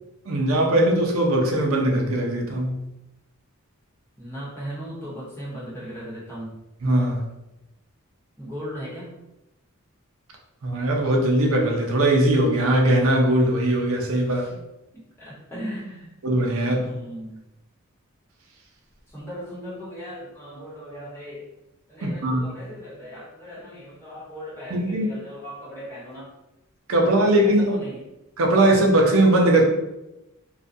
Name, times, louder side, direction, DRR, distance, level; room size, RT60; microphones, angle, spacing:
voice 1, 0.3-2.8 6.8-7.2 10.6-14.5 16.2-16.9 22.0-22.5 24.7-25.1 26.9-27.8 28.4-29.6, right 1 dB, 70° right, 0 dB, 0.5 m, -20 dB
voice 2, 4.2-6.6 8.4-9.1 14.4-14.5 14.9-16.1 16.7-17.4 19.1-21.5 21.9-26.3 27.0-28.0, equal, 10° left, -8 dB, 0.9 m, -37 dB
2.5 x 2.2 x 2.5 m, 0.94 s
head